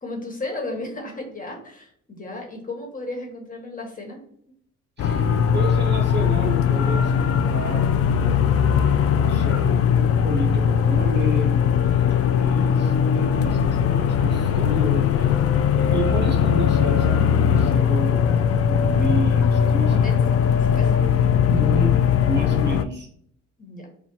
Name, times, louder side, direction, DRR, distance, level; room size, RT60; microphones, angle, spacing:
voice 1, 0.0-4.2 19.8-21.0 23.6-23.9, left 2 dB, 25° left, 1 dB, 1.4 m, -34 dB
sound 1, 5.0-22.8, left 7 dB, 50° left, 0.4 m, -19 dB
voice 2, 5.0-11.6 12.4-15.3 15.7-20.0 21.5-23.1, right 2 dB, 35° right, 3 dB, 0.9 m, -31 dB
4.2 x 2.3 x 4.2 m, 0.63 s
cardioid pair, 90°, 30 cm